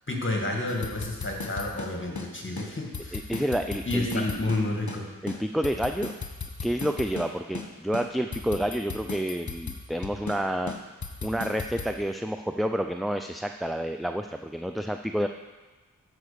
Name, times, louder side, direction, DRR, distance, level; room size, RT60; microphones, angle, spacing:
voice 1, 0.1-3.2 3.9-5.1, left 2 dB, 30° left, 0 dB, 1.9 m, -30 dB
sound 1, 0.7-2.3 2.6-2.7 2.9-5.0 5.3-7.3 7.5-7.7 7.9-10.4 10.7-11.9, left 4 dB, 50° left, 1.3 m, -36 dB
voice 2, 3.1-4.2 5.2-6.1 6.6-10.7 11.2-15.3, equal, ahead, 6 dB, 0.4 m, -29 dB
10.5 x 4.9 x 6.8 m, 1.3 s
cardioid pair, 40°, 36 cm